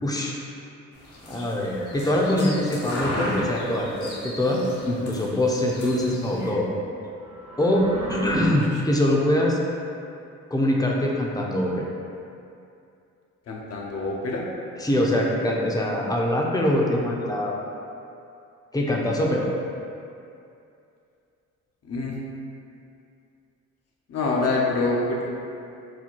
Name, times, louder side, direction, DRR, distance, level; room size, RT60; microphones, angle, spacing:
voice 1, 0.0-0.3 1.3-6.7 7.6-9.6 10.5-11.9 14.8-17.6 18.7-19.4, left 1 dB, 10° left, -2 dB, 0.6 m, -23 dB
sound 1, 0.9-6.5, left 1 dB, 75° left, 1.0 m, -36 dB
sound 2, 7.1-8.5, right 2 dB, 60° right, 1.0 m, -36 dB
voice 2, 8.4-8.8 13.5-14.5 21.8-22.2 24.1-25.3, left 3 dB, 55° left, -2 dB, 0.7 m, -26 dB
4.2 x 2.2 x 4.4 m, 2.6 s
cardioid pair, 90°, 30 cm